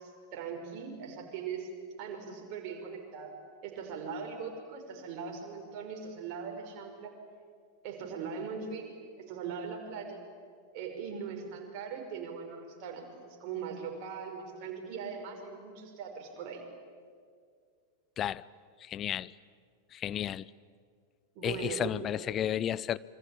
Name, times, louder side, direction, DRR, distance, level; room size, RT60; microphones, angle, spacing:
voice 1, 0.0-1.7 2.0-3.3 3.6-7.2 7.8-8.9 9.2-10.2 10.7-16.6 21.3-21.9, right 6 dB, 45° right, 5.6 m, -40 dB
voice 2, 18.8-19.3 19.9-20.5 21.4-23.0, left 10 dB, 30° left, 0.6 m, -32 dB
27.0 x 24.5 x 8.8 m
figure-of-eight pair, 90°, 0 cm